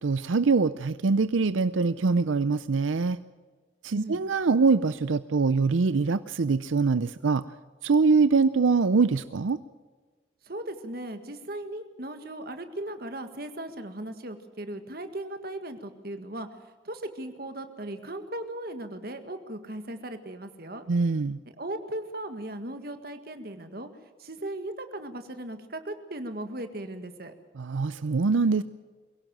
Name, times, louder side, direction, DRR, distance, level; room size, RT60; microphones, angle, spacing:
voice 1, 0.0-3.2 3.8-7.4 7.8-9.6 20.9-21.4 27.6-28.6, right 4 dB, 85° right, 14 dB, 0.6 m, -23 dB
voice 2, 10.4-16.5 16.8-20.8 21.6-23.9 24.2-27.3, right 1 dB, 50° right, 8 dB, 1.8 m, -37 dB
23.0 x 17.0 x 7.5 m, 1.4 s
head